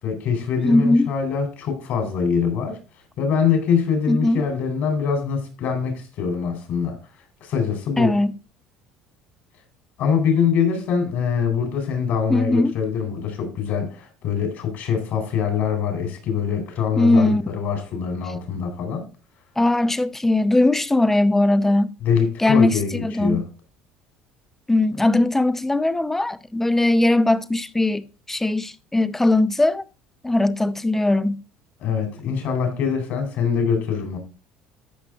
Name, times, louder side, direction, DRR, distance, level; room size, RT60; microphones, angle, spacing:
voice 1, 0.0-2.8 3.2-7.0 7.4-8.1 10.0-19.0 22.0-23.4 31.8-34.2, left 6 dB, 60° left, 4.2 m, -23 dB
voice 2, 0.6-1.1 4.1-4.4 8.0-8.3 12.3-12.7 17.0-17.4 19.6-21.9 22.4-23.4 24.7-29.8 30.2-31.4, left 2 dB, 10° left, 0.7 m, -19 dB
13.5 x 5.5 x 3.8 m
supercardioid pair, 85°, 3 cm